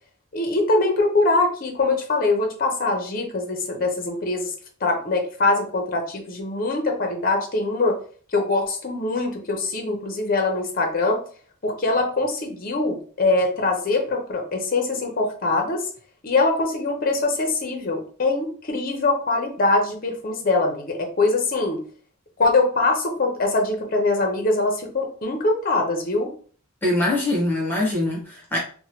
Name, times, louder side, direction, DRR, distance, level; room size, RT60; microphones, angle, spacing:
voice 1, 0.3-4.5 4.8-8.0 8.3-11.2 11.6-15.8 16.2-21.8 22.4-26.3, left 3 dB, 45° left, 2 dB, 0.6 m, -23 dB
voice 2, 26.8-28.6, left 1 dB, 10° left, -4 dB, 1.1 m, -23 dB
3.0 x 2.1 x 2.9 m, 0.44 s
head